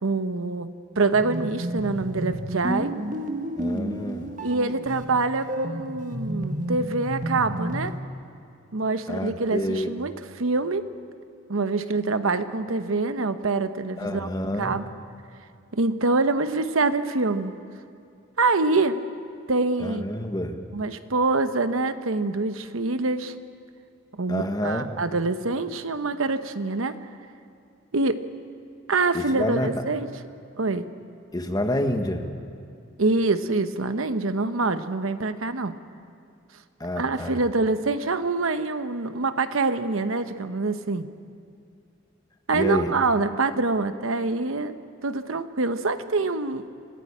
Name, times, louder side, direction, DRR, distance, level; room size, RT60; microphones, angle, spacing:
voice 1, 0.0-2.9 4.4-8.0 8.7-10.8 11.5-14.3 14.6-14.9 15.7-17.5 18.4-19.0 19.5-20.1 20.7-23.3 24.2-26.9 27.9-28.2 28.9-30.1 30.6-30.9 33.0-35.7 37.0-41.1 42.5-44.8 45.0-46.6, right 3 dB, 75° right, 10 dB, 1.0 m, -25 dB
sound 1, 1.1-8.0, equal, 40° right, 1.5 m, -31 dB
voice 2, 3.6-4.3 9.1-9.9 14.0-14.7 19.8-20.6 24.3-24.9 29.1-29.7 31.3-32.2 36.8-37.4 42.5-42.9, left 1 dB, 20° left, 5 dB, 1.4 m, -28 dB
25.5 x 15.5 x 8.7 m, 2.4 s
head